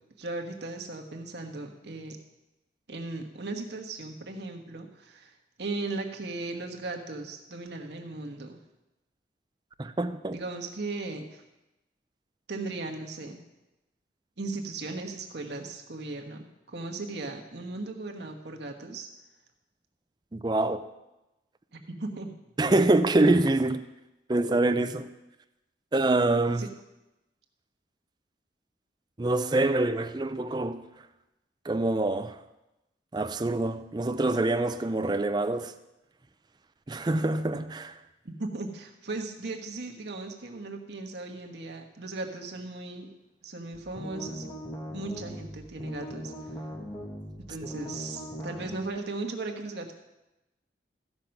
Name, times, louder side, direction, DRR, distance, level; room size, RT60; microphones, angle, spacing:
voice 1, 0.2-2.2 2.9-5.3 5.6-8.6 10.3-11.4 12.5-13.4 14.4-19.1 21.7-22.3 26.6-26.7 38.2-43.1 43.4-44.5 44.9-46.3 47.5-49.9, right 3 dB, 75° right, 1.3 m, -37 dB
voice 2, 9.8-10.4 20.3-20.8 22.6-23.8 24.3-25.1 25.9-26.7 29.2-30.8 31.7-32.4 33.1-35.7 36.9-37.9, right 2 dB, 25° right, 0.4 m, -25 dB
sound 1, 43.7-48.8, equal, 20° left, 1.4 m, -40 dB
14.5 x 5.4 x 5.8 m
head